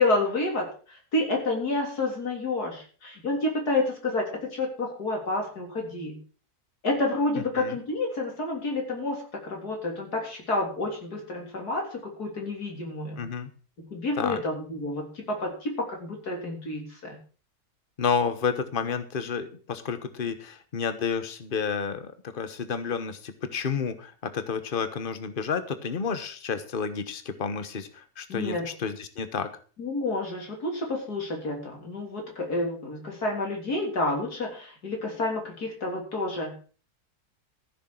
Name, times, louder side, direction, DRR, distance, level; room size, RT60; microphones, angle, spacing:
voice 1, 0.0-6.2 6.8-13.2 13.8-17.2 28.3-28.7 29.8-36.5, left 2 dB, 80° left, 0 dB, 4.2 m, -29 dB
voice 2, 13.2-13.5 14.2-14.4 18.0-29.5, left 6 dB, 35° left, 11 dB, 1.3 m, -30 dB
14.5 x 6.6 x 6.4 m, 0.40 s
omnidirectional pair, 1.6 m